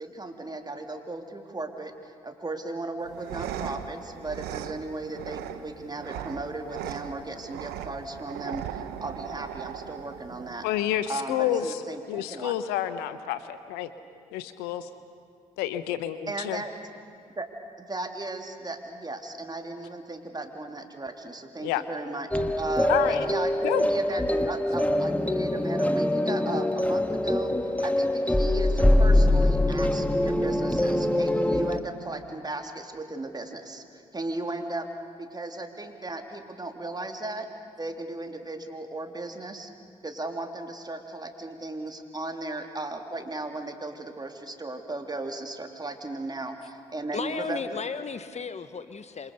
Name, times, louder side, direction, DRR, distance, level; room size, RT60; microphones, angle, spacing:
voice 1, 0.0-10.7 11.1-12.5 16.3-16.7 17.3-17.5 17.8-34.9 35.2-37.5 37.8-39.7 40.0-48.1, right 2 dB, 25° right, 4 dB, 3.4 m, -36 dB
sound 1, 3.0-11.0, right 10 dB, 80° right, 1.0 m, -38 dB
voice 2, 10.6-11.8 12.1-13.9 14.3-14.9 15.6-16.6 21.6-21.8 22.9-23.3 23.6-23.9, left 12 dB, 80° left, 12 dB, 0.9 m, -29 dB
sound 2, 22.3-31.8, left 1 dB, 10° left, 1.6 m, -24 dB
voice 3, 47.1-49.3, left 5 dB, 45° left, 12 dB, 1.1 m, -34 dB
27.5 x 25.5 x 6.8 m, 2.3 s
hypercardioid pair, 45°, 16 cm